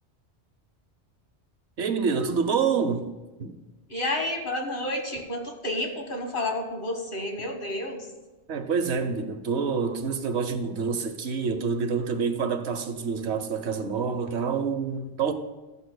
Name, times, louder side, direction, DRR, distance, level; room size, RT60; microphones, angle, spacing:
voice 1, 1.8-3.1 3.4-3.6 8.5-15.3, right 5 dB, 75° right, 1.1 m, -27 dB
voice 2, 3.9-8.1, left 1 dB, 50° left, 1.6 m, -30 dB
14.5 x 11.5 x 2.2 m
omnidirectional pair, 1.1 m